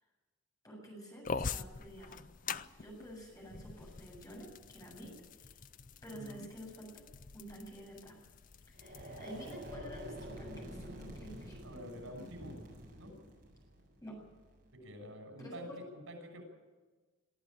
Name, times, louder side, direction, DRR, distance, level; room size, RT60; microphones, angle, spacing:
voice 1, 0.6-2.2 2.8-5.1 5.4-5.5 6.0-6.9 7.3-8.2 8.7-11.6 14.0-14.2 15.4-15.8, equal, 15° left, -1 dB, 7.7 m, -49 dB
sound 1, 1.2-9.7, left 5 dB, 40° left, 0.5 m, -45 dB
voice 2, 6.1-6.4 11.6-12.6 13.0-13.1 14.7-16.4, equal, 90° right, 4 dB, 6.6 m, -48 dB
sound 2, 8.7-14.7, equal, 50° right, 7.7 m, -48 dB
23.5 x 13.5 x 8.9 m, 1.3 s
head